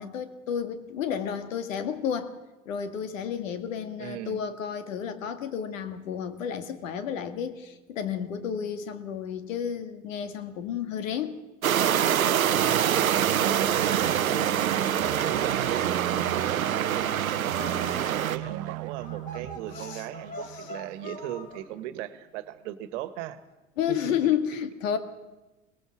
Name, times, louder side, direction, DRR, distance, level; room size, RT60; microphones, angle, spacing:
voice 1, 0.0-2.3 2.7-11.4 19.8-20.0 20.4-20.7 23.8-25.0, left 8 dB, 70° left, 9 dB, 2.0 m, -31 dB
voice 2, 4.0-4.4 12.7-14.6 14.9-23.4 23.9-24.2, right 12 dB, 60° right, 13 dB, 1.6 m, -38 dB
sound 1, 11.6-18.4, right 9 dB, 90° right, 0.7 m, -25 dB
sound 2, 12.5-21.9, right 15 dB, 40° right, 0.6 m, -37 dB
sound 3, 14.8-21.6, left 1 dB, 20° left, 4.7 m, -44 dB
23.0 x 18.5 x 6.4 m, 1.1 s
hypercardioid pair, 80°, 40 cm